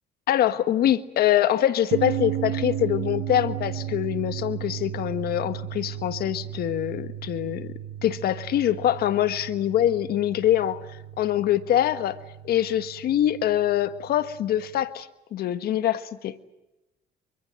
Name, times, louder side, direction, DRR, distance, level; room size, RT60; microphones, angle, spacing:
voice 1, 0.3-7.7 8.0-10.8 11.2-12.2 12.4-16.3, left 11 dB, 65° left, 12 dB, 1.5 m, -24 dB
sound 1, 1.9-14.8, right 11 dB, 85° right, 1.3 m, -35 dB
28.5 x 24.0 x 7.8 m, 0.95 s
cardioid pair, 110°, 17 cm